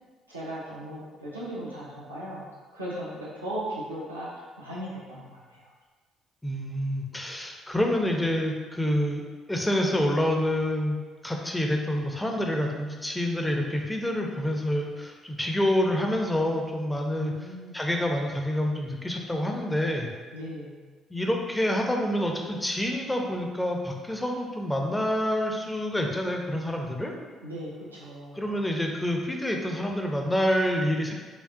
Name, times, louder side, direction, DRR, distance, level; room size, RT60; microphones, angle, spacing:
voice 1, 0.3-2.5 2.7-5.7 17.2-17.8 20.3-20.8 27.4-28.5, right 1 dB, 90° right, -8 dB, 0.6 m, -37 dB
voice 2, 6.4-9.2 9.5-11.0 11.2-17.3 17.7-20.1 21.1-27.1 28.3-31.1, left 1 dB, 10° left, 1 dB, 0.6 m, -27 dB
5.0 x 2.3 x 2.6 m, 1.4 s
figure-of-eight pair, 45°, 0 cm